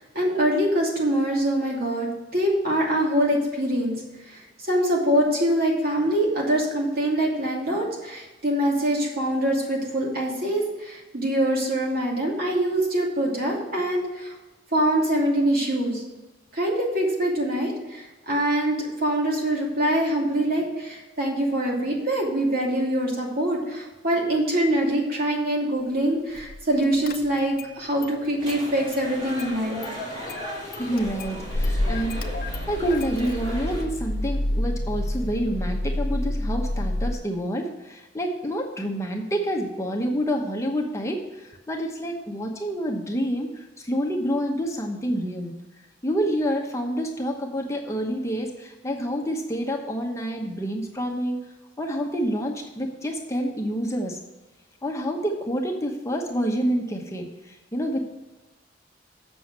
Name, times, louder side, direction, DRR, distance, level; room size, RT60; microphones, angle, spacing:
voice 1, 0.0-4.0 4.3-14.3 14.7-16.0 16.5-29.8, right 1 dB, 55° right, -2 dB, 2.7 m, -24 dB
Car / Engine starting, 26.4-26.6 26.9-27.7 28.0-29.1 29.4-37.1, left 1 dB, 50° left, 0.8 m, -29 dB
sound 1, 28.4-33.8, left 1 dB, 25° right, 3.1 m, -37 dB
voice 2, 30.7-45.5 46.0-51.4 51.8-54.2 54.8-58.0, equal, 15° left, 1 dB, 1.0 m, -28 dB
7.7 x 6.2 x 7.4 m, 1.1 s
head